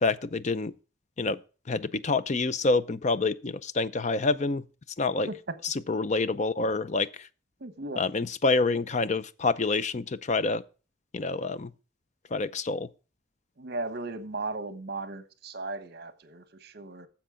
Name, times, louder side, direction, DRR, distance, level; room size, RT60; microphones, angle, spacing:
voice 1, 0.0-0.7 1.2-1.4 1.7-4.6 5.0-5.3 5.6-7.3 8.0-10.6 11.1-11.7 12.3-12.9, left 3 dB, 40° left, 0.5 m, -27 dB
voice 2, 7.6-8.0 13.6-17.1, right 2 dB, 55° right, 1.1 m, -36 dB
10.0 x 7.3 x 3.7 m
head